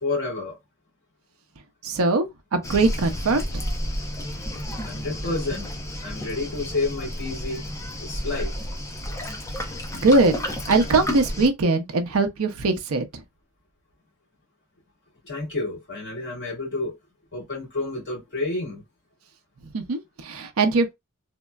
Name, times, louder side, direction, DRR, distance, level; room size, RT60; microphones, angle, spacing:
voice 1, 0.0-0.6 4.8-5.7 6.0-7.6 8.0-8.5 15.2-17.0 17.3-18.8, left 3 dB, 55° left, 2.1 m, -29 dB
voice 2, 1.8-2.3 2.5-3.6 10.0-10.3 10.7-13.1 19.7-20.9, right 3 dB, 75° right, 0.6 m, -21 dB
Waves surf, 2.6-11.5, equal, 15° left, 0.6 m, -31 dB
3.5 x 2.0 x 2.2 m
head